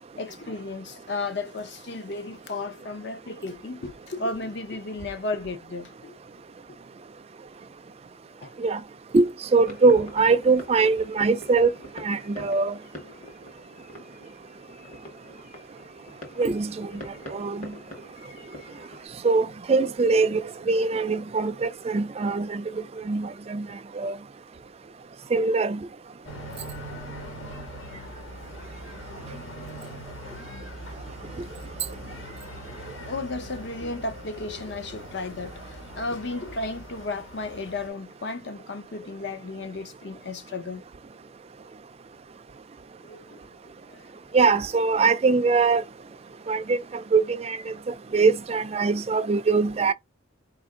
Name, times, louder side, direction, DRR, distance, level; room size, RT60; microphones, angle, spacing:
voice 1, 0.2-6.2 8.4-8.5 33.1-40.8 43.0-44.0, left 3 dB, 55° left, 0.7 m, -34 dB
voice 2, 9.1-11.7 12.0-12.8 16.4-16.9 17.3-17.7 19.2-22.6 23.1-23.7 24.0-24.2 25.3-25.8 44.3-45.8 46.5-47.7 48.1-49.9, right 4 dB, 30° right, 0.3 m, -22 dB
sound 1, 9.6-19.1, left 1 dB, 35° left, 1.3 m, -45 dB
sound 2, 26.2-37.9, equal, 70° left, 1.4 m, -41 dB
4.3 x 2.5 x 3.6 m
head